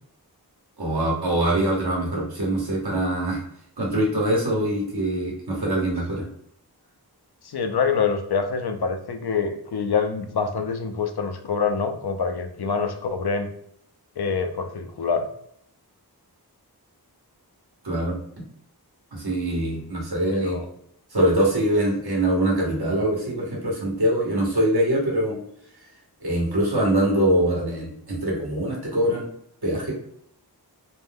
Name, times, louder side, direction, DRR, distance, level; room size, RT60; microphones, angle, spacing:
voice 1, 0.8-3.4 3.8-6.2 17.8-18.2 19.1-20.6 21.1-25.4 26.2-29.2 29.6-29.9, right 1 dB, 75° right, -3 dB, 1.1 m, -23 dB
voice 2, 7.4-13.5 14.2-15.2 20.3-20.7, left 5 dB, 75° left, 6 dB, 0.5 m, -25 dB
2.5 x 2.1 x 3.4 m, 0.71 s
wide cardioid pair, 50°, 39 cm